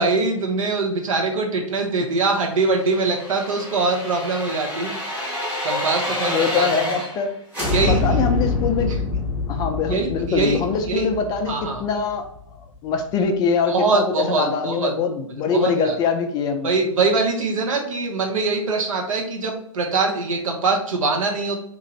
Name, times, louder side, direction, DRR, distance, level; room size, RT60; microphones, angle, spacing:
voice 1, 0.0-4.9 5.6-6.7 7.7-8.2 9.9-10.6 10.9-11.1 11.5-11.8 13.7-14.9 15.5-16.0 16.6-21.6, right 3 dB, 70° right, 1 dB, 1.0 m, -23 dB
sound 1, 2.5-7.3 7.5-12.4 12.8-12.9, left 2 dB, 10° right, 1.1 m, -27 dB
voice 2, 6.2-7.3 7.9-8.9 9.5-12.3 12.8-16.7, left 5 dB, 25° left, 5 dB, 0.4 m, -23 dB
3.0 x 2.5 x 4.0 m, 0.68 s
hypercardioid pair, 120°, 17 cm